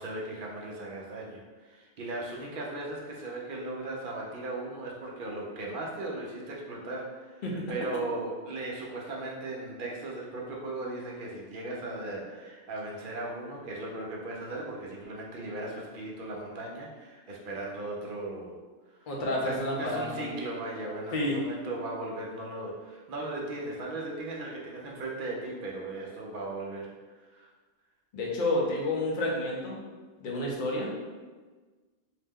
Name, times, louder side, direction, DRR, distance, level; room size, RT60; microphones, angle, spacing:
voice 1, 0.0-18.5 18.9-19.1 19.4-27.5, right 2 dB, 60° right, -2 dB, 0.6 m, -37 dB
voice 2, 7.4-7.7 19.1-20.3 21.1-21.4 28.1-29.8 30.2-30.9, left 1 dB, 55° left, -2 dB, 0.7 m, -30 dB
2.7 x 2.1 x 3.5 m, 1.4 s
omnidirectional pair, 1.2 m